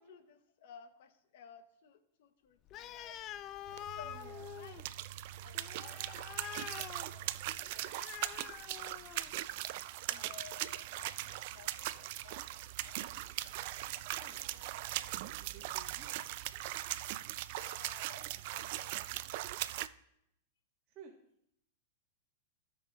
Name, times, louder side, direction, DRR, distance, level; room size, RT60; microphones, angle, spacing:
voice 1, 0.0-3.7 3.9-5.0 5.4-8.5 10.1-13.0 13.6-14.7 17.5-19.6, left 7 dB, 65° left, 9 dB, 0.9 m, -57 dB
Animal, 2.7-9.4, left 11 dB, 35° left, 0.3 m, -47 dB
sound 1, 3.7-19.9, right 15 dB, 55° right, 0.3 m, -40 dB
voice 2, 4.0-4.4 9.5-10.3 14.2-14.4 15.3-16.1 20.9-21.1, right 6 dB, 30° right, -2 dB, 1.4 m, -57 dB
16.0 x 5.6 x 2.4 m, 0.77 s
hypercardioid pair, 125°, 0 cm